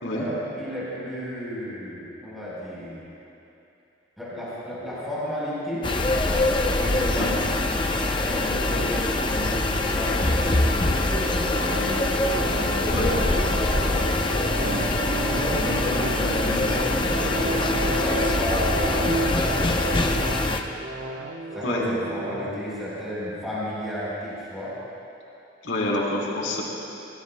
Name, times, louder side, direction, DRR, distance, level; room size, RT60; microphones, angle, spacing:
voice 1, 0.1-3.1 4.2-7.4 8.1-14.0 15.3-20.1 21.5-24.8, equal, ahead, -9 dB, 3.8 m, -33 dB
sound 1, 5.8-20.6, left 2 dB, 25° left, 0.6 m, -24 dB
sound 2, 8.5-22.5, right 2 dB, 75° right, 0.8 m, -33 dB
voice 2, 25.6-26.6, left 1 dB, 75° left, -4 dB, 3.5 m, -27 dB
26.5 x 18.0 x 2.2 m, 2.8 s
head